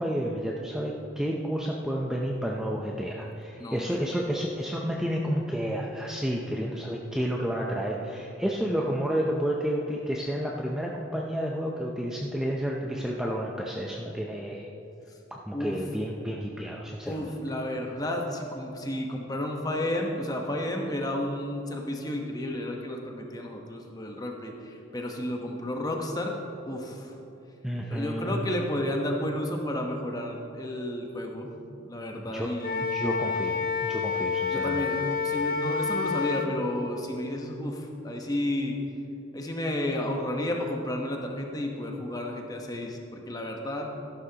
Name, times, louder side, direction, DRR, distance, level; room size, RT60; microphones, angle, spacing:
voice 1, 0.0-14.7 15.5-17.1 27.6-28.5 32.3-32.5 32.9-34.8, equal, 5° right, -2 dB, 0.5 m, -30 dB
voice 2, 3.6-4.0 15.5-15.8 17.0-26.4 26.7-27.2 27.8-31.5 31.8-32.8 34.5-38.8 39.3-43.9, left 1 dB, 20° left, 1 dB, 1.0 m, -32 dB
Wind instrument woodwind instrument, 32.6-36.5, left 5 dB, 45° left, 0.6 m, -29 dB
14.0 x 11.5 x 2.9 m, 2.9 s
head